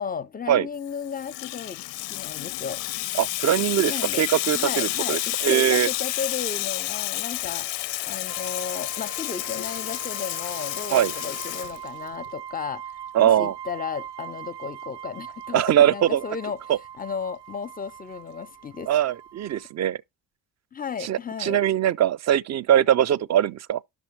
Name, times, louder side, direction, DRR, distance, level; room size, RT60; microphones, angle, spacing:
voice 1, 0.0-1.8 2.1-2.8 3.9-4.2 4.5-7.7 8.0-12.8 13.2-16.6 17.0-18.9 20.7-21.6, left 6 dB, 20° left, 0.4 m, -34 dB
Water tap faucet / Sink (filling or washing), 0.9-12.3, left 18 dB, 90° left, 0.5 m, -30 dB
voice 2, 3.2-5.9 10.9-11.1 13.1-13.5 15.5-16.2 16.7-16.8 18.9-20.0 21.0-23.8, right 11 dB, 40° right, 0.4 m, -21 dB
sound 1, 8.3-19.7, right 9 dB, 90° right, 0.6 m, -41 dB
11.0 x 6.2 x 3.1 m
cardioid pair, 120°, 43 cm